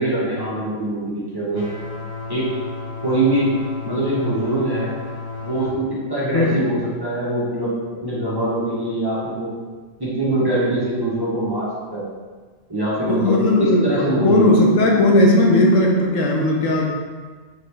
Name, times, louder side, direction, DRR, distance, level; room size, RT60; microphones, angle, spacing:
voice 1, 0.0-1.7 2.3-2.5 3.0-3.5 3.8-4.9 5.4-7.8 8.0-9.5 10.0-12.0 12.7-14.4, right 1 dB, 25° right, -8 dB, 0.7 m, -23 dB
sound 1, 1.5-5.7, left 3 dB, 60° left, 1.2 m, -33 dB
voice 2, 13.1-16.9, left 1 dB, 75° left, -1 dB, 1.1 m, -16 dB
4.3 x 2.9 x 3.2 m, 1.4 s
omnidirectional pair, 1.3 m